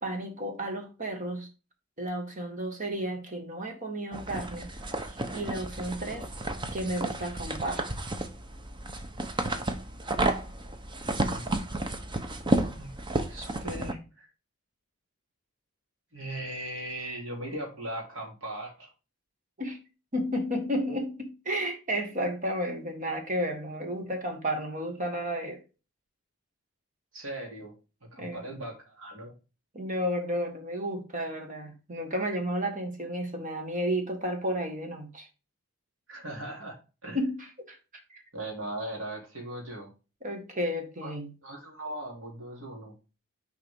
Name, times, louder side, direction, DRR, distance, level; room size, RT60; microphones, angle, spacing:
voice 1, 0.0-1.5 2.0-4.7 5.0-6.3 6.7-7.8 19.6-19.8 20.1-25.6 28.2-28.4 29.7-35.3 37.1-38.2 40.2-41.3, equal, 40° right, 1.7 m, -32 dB
sound 1, 4.1-13.9, right 2 dB, 25° right, 0.8 m, -32 dB
voice 2, 11.2-11.6 12.7-12.9 13.3-14.3 16.1-18.9 27.1-27.7 28.1-29.3 36.1-36.8 37.0-37.2 38.3-39.9 41.0-41.1 41.4-42.9, right 1 dB, 65° right, 3.1 m, -38 dB
6.8 x 4.8 x 3.6 m
head